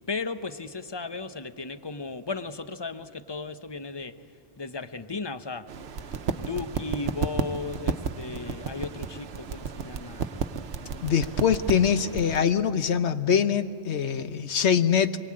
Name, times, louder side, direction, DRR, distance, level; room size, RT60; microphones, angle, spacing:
voice 1, 0.1-4.1 4.6-5.7 6.3-10.3, left 4 dB, 25° left, 10 dB, 0.7 m, -35 dB
sound 1, 5.7-12.4, right 5 dB, 65° right, 1.0 m, -33 dB
voice 2, 11.0-15.2, left 7 dB, 65° left, 10 dB, 1.1 m, -23 dB
26.5 x 23.0 x 8.6 m, 2.5 s
omnidirectional pair, 1.2 m